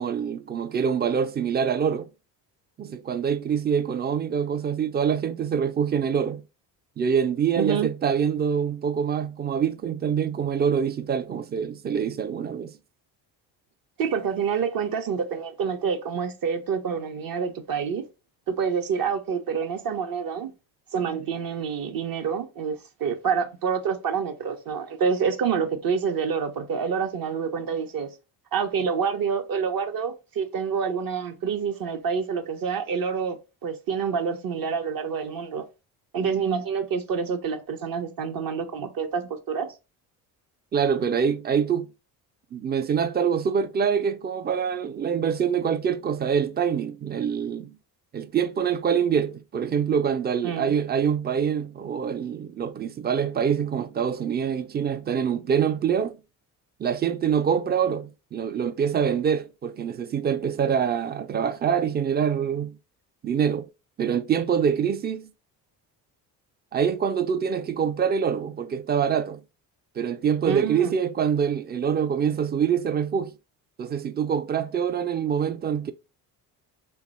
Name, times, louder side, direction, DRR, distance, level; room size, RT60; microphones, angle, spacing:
voice 1, 0.0-2.1 2.8-6.4 7.0-12.8 40.7-41.9 42.5-47.8 48.1-56.2 56.8-62.8 63.2-63.7 64.0-65.3 66.7-69.4 70.0-73.3 73.8-75.9, right 7 dB, 25° right, 0.3 m, -25 dB
voice 2, 7.6-7.9 14.0-18.0 18.5-20.5 20.9-28.1 28.5-33.4 33.6-35.7 36.1-39.7 50.4-50.7 70.4-70.9, right 6 dB, 45° right, 0.8 m, -27 dB
3.0 x 2.2 x 4.0 m
supercardioid pair, 65°, 46 cm